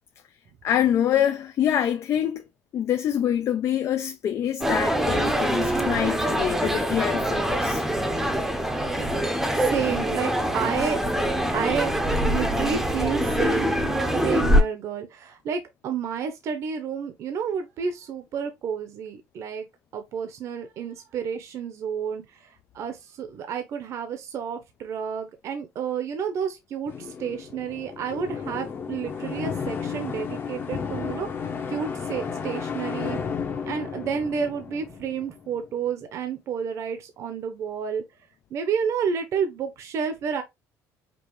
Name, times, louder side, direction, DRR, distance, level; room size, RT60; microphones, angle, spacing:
voice 1, 0.6-2.4 2.7-7.8, left 10 dB, 50° left, 0.4 m, -25 dB
sound 1, 4.6-14.6, equal, 5° right, 0.7 m, -24 dB
voice 2, 9.2-11.0 11.5-11.9 12.2-13.7 14.2-19.7 19.9-33.2 33.7-38.0 38.5-40.4, right 7 dB, 55° right, 0.8 m, -30 dB
sound 2, 26.9-35.7, left 6 dB, 35° left, 0.9 m, -33 dB
5.3 x 2.6 x 3.1 m
cardioid pair, 145°, 6 cm